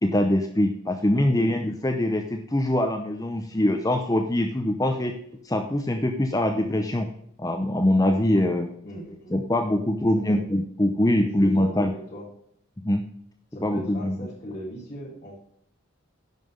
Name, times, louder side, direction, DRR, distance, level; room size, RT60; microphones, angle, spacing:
voice 1, 0.0-5.2 5.4-7.1 7.4-8.7 9.3-11.9 12.8-13.0 13.6-14.1, left 1 dB, 15° left, 5 dB, 0.7 m, -23 dB
voice 2, 8.8-9.4 10.2-10.5 11.2-12.3 13.5-15.4, right 1 dB, 40° left, -12 dB, 4.8 m, -38 dB
10.5 x 5.9 x 6.6 m, 0.68 s
head